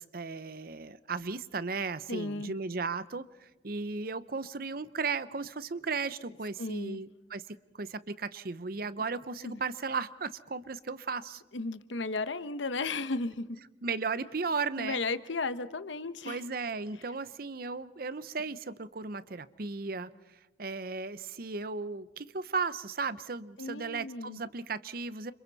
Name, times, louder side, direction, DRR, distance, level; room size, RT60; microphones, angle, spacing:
voice 1, 0.0-11.4 13.8-15.0 16.3-20.1 20.6-25.3, right 4 dB, 50° right, 15 dB, 0.7 m, -35 dB
voice 2, 2.1-2.5 6.6-7.0 9.4-9.6 11.5-13.6 14.8-16.4 23.6-24.4, left 3 dB, 75° left, 12 dB, 0.9 m, -34 dB
30.0 x 27.0 x 4.1 m, 1.1 s
head